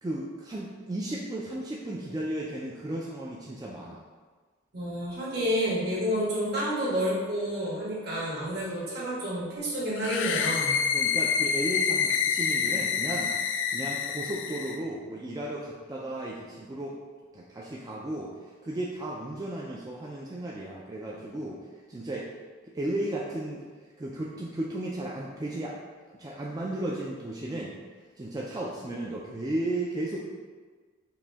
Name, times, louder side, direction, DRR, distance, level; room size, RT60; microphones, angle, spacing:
voice 1, 0.0-4.0 10.9-13.4 13.7-17.0 17.3-18.3 18.6-21.6 21.9-22.3 22.7-23.6 24.0-25.8 26.1-27.7 28.2-30.3, right 1 dB, 20° right, -4 dB, 0.3 m, -34 dB
voice 2, 4.7-10.8, equal, 60° right, -6 dB, 1.5 m, -29 dB
sound 1, 10.0-14.8, left 6 dB, 70° left, 0.3 m, -27 dB
4.9 x 2.6 x 3.4 m, 1.4 s
head